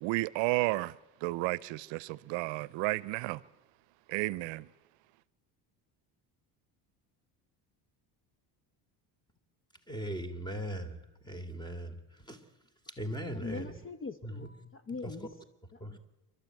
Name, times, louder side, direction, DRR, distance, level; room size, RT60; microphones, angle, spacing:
voice 1, 0.0-3.4 4.1-4.7, right 21 dB, 75° right, 0.7 m, -32 dB
voice 2, 9.9-12.4 12.9-13.7 14.2-14.5 15.0-15.1 15.8-16.0, right 1 dB, 10° left, 3.1 m, -39 dB
voice 3, 13.3-15.3 15.7-16.0, left 4 dB, 25° left, 1.0 m, -42 dB
28.5 x 13.0 x 9.3 m
cardioid pair, 100°, 45 cm